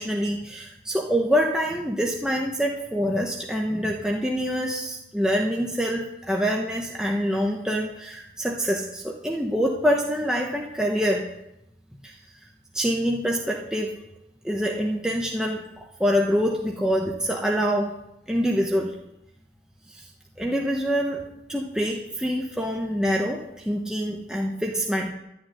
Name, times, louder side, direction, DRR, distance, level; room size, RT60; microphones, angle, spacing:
voice 1, 0.0-11.2 12.0-12.1 12.7-14.0 14.4-17.9 18.3-18.9 19.9-20.0 20.4-21.2 21.5-25.1, equal, 5° right, -1 dB, 1.0 m, -25 dB
12.0 x 6.4 x 9.5 m, 0.85 s
head